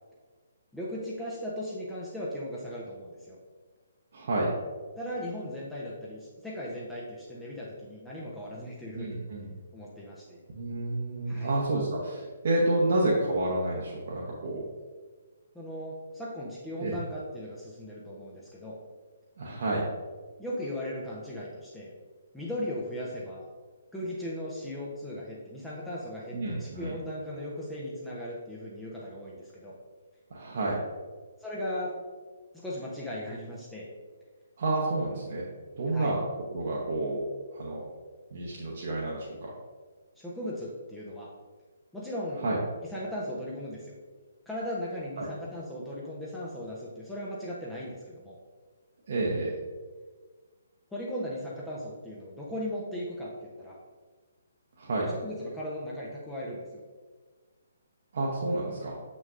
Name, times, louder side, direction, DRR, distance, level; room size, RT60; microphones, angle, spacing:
voice 1, 0.7-3.4 5.0-9.2 9.7-10.4 11.3-11.5 15.5-18.8 20.4-21.9 22.3-23.5 23.9-29.7 31.4-32.0 32.5-33.9 35.9-36.1 40.2-41.3 41.9-42.4 42.9-43.9 44.5-48.3 50.9-53.8 55.1-56.6, left 1 dB, 5° left, -6 dB, 0.8 m, -37 dB
voice 2, 4.1-4.5 8.9-9.5 10.5-14.6 16.8-17.0 19.4-19.8 26.3-26.9 30.3-30.8 34.6-35.4 35.8-36.2 36.5-37.2 37.5-37.8 38.3-39.5 42.4-42.6 45.2-45.3 49.1-49.6 54.8-55.1 58.1-59.0, right 2 dB, 50° right, -4 dB, 1.0 m, -29 dB
6.4 x 6.1 x 2.5 m, 1.4 s
figure-of-eight pair, 130°, 0 cm